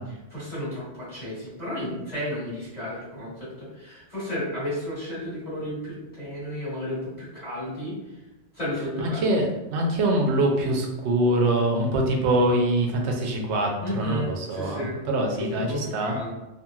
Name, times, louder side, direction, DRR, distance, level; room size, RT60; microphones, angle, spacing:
voice 1, 0.0-8.2 8.5-9.4 13.8-15.0 15.4-16.3, left 1 dB, 35° left, -12 dB, 1.3 m, -33 dB
voice 2, 9.7-15.7 15.9-16.2, right 1 dB, 80° right, 1 dB, 0.9 m, -24 dB
2.8 x 2.6 x 2.3 m, 1.0 s
omnidirectional pair, 1.2 m